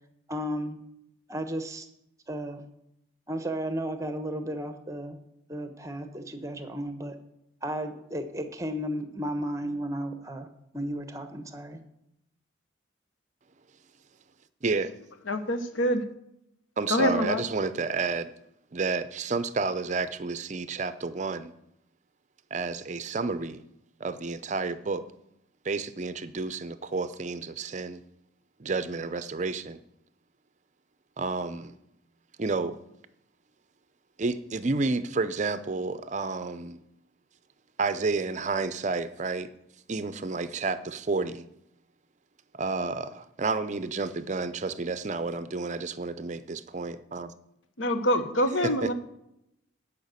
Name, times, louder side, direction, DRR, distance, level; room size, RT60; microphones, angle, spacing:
voice 1, 0.3-0.8 1.3-1.9 2.3-2.6 3.3-5.2 5.5-7.2 7.6-10.5 10.7-11.8, equal, 15° right, 8 dB, 0.9 m, -34 dB
voice 2, 14.6-14.9 16.8-18.3 18.7-21.5 22.5-23.6 24.0-25.0 25.6-28.0 28.6-29.8 31.2-31.8 32.4-32.8 34.2-36.8 37.8-39.5 39.9-41.5 42.5-47.3 48.6-48.9, right 3 dB, 35° right, 13 dB, 0.5 m, -30 dB
voice 3, 15.3-16.0 16.9-17.4 47.8-48.9, equal, 80° left, 9 dB, 1.1 m, -25 dB
10.5 x 5.6 x 8.2 m, 0.80 s
head